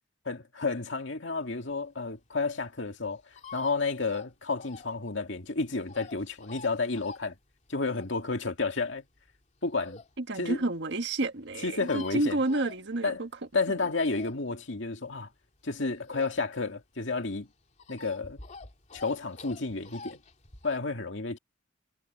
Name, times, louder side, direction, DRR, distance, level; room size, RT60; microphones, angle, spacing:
voice 1, 0.3-3.2 3.5-7.3 7.7-9.0 9.6-10.0 10.3-10.6 11.6-12.4 13.0-13.2 13.5-15.3 15.6-17.5 17.9-18.4 18.9-20.2 20.6-21.4, left 3 dB, 65° left, 2.3 m, -31 dB
sound 1, 1.5-10.2 10.6-10.7 10.9-11.0 11.2-11.3 11.5-13.4 13.7-16.7 17.0-20.8, left 4 dB, 40° left, 2.9 m, -48 dB
voice 2, 10.2-13.3 13.7-13.8, right 2 dB, 65° right, 1.6 m, -30 dB
head